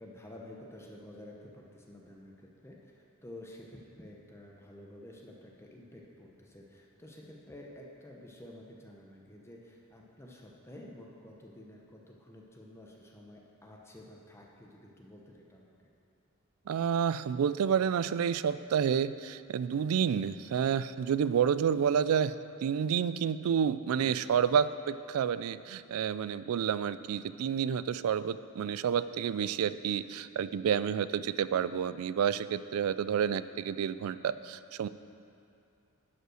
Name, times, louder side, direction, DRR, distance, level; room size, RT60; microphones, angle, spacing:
voice 1, 0.0-15.7 24.0-24.3, left 1 dB, 10° left, -1 dB, 0.8 m, -51 dB
voice 2, 16.7-22.3 22.6-34.9, right 7 dB, 75° right, 15 dB, 0.3 m, -29 dB
11.0 x 5.4 x 6.3 m, 2.5 s
head